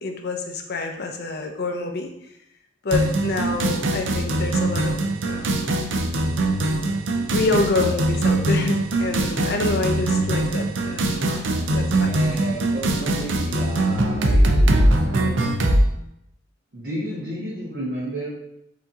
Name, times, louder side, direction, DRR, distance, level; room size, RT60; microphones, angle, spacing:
voice 1, 0.0-2.1 2.8-4.9 5.3-5.6 7.3-11.3 11.7-12.1, left 3 dB, 55° left, 4 dB, 0.6 m, -27 dB
sound 1, 2.9-15.8, right 1 dB, 80° right, 0.6 m, -22 dB
voice 2, 11.2-11.6 12.0-15.4 16.7-18.3, equal, 55° right, -6 dB, 1.0 m, -32 dB
4.9 x 2.8 x 3.7 m, 0.80 s
head